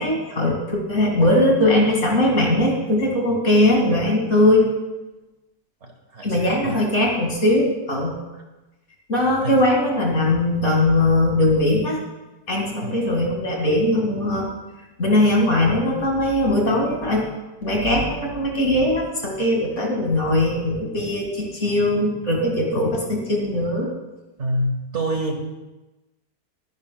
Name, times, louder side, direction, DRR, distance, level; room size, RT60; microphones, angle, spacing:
voice 1, 0.0-4.6 6.2-8.2 9.1-12.0 12.5-14.5 15.0-17.2 17.6-23.9, left 1 dB, 45° left, -1 dB, 2.5 m, -20 dB
voice 2, 5.8-6.8 9.4-9.6 12.8-13.1 24.4-25.5, right 1 dB, 45° right, 3 dB, 1.5 m, -27 dB
20.5 x 11.0 x 2.3 m, 1.1 s
omnidirectional pair, 1.7 m